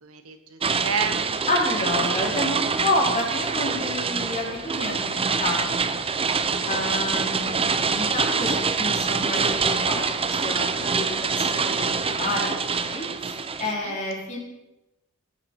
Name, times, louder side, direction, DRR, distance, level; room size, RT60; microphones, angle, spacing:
voice 1, 0.0-1.5 2.1-2.3 6.5-7.0 13.7-14.0, right 6 dB, 80° right, 7 dB, 1.4 m, -33 dB
sound 1, 0.6-13.7, right 5 dB, 25° right, 0.7 m, -25 dB
voice 2, 1.5-5.8 6.6-14.4, left 2 dB, 35° left, -3 dB, 4.4 m, -29 dB
17.0 x 9.4 x 5.0 m, 0.96 s
head